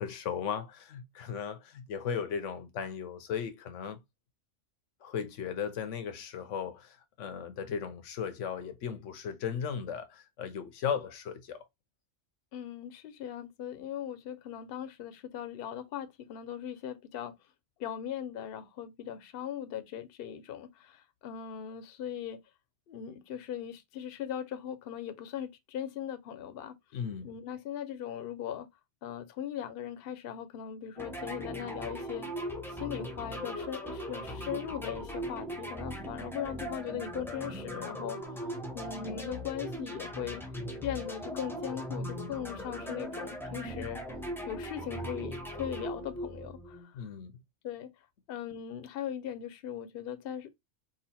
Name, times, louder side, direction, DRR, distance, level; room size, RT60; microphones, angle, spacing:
voice 1, 0.0-4.0 5.0-11.6 26.9-27.3 46.9-47.3, left 7 dB, 85° left, 1.1 m, -36 dB
voice 2, 12.5-17.3 17.8-22.4 22.9-26.7 27.2-28.7 29.0-32.3 32.7-38.2 38.7-40.4 40.8-44.0 44.5-47.1 47.6-47.9 48.3-50.5, left 9 dB, 60° left, 0.8 m, -39 dB
sound 1, 31.0-46.9, equal, ahead, 0.7 m, -39 dB
4.1 x 2.4 x 4.2 m
omnidirectional pair, 1.2 m